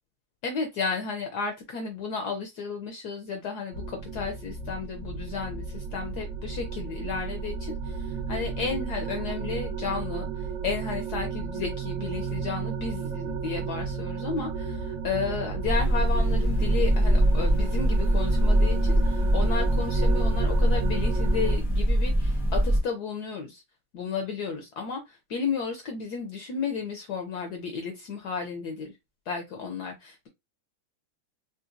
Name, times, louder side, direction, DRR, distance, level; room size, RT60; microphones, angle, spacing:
voice 1, 0.4-10.3 10.6-23.6 23.9-28.9 29.3-30.3, left 5 dB, 75° left, 0.9 m, -33 dB
sound 1, 3.7-21.6, right 6 dB, 65° right, 1.1 m, -33 dB
sound 2, 15.6-22.8, equal, 5° right, 0.3 m, -23 dB
3.9 x 2.4 x 2.5 m
omnidirectional pair, 2.3 m